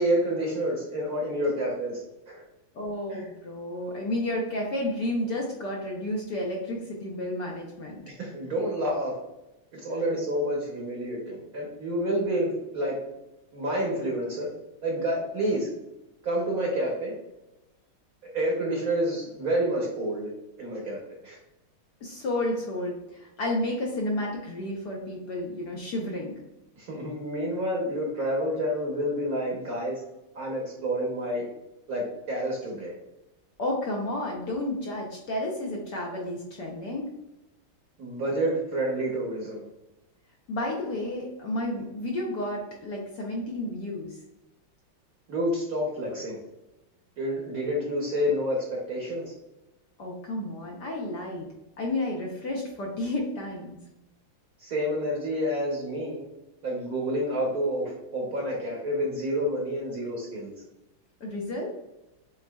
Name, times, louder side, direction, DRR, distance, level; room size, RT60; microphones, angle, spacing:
voice 1, 0.0-2.0 2.3-2.4 3.1-3.3 8.1-9.1 9.7-13.0 13.5-14.5 14.8-15.7 16.2-17.1 18.3-20.3 20.6-21.0 21.2-21.4 26.8-30.0 30.3-31.5 31.9-32.9 38.0-39.6 45.3-46.4 47.2-49.3 54.6-56.2 56.6-60.5, equal, 55° right, -3 dB, 1.1 m, -29 dB
voice 2, 2.7-8.0 22.0-26.4 33.6-37.1 40.5-44.2 50.0-51.5 51.8-53.8 61.2-61.7, left 1 dB, 65° left, -1 dB, 1.1 m, -31 dB
7.1 x 2.6 x 2.2 m, 0.95 s
omnidirectional pair, 2.3 m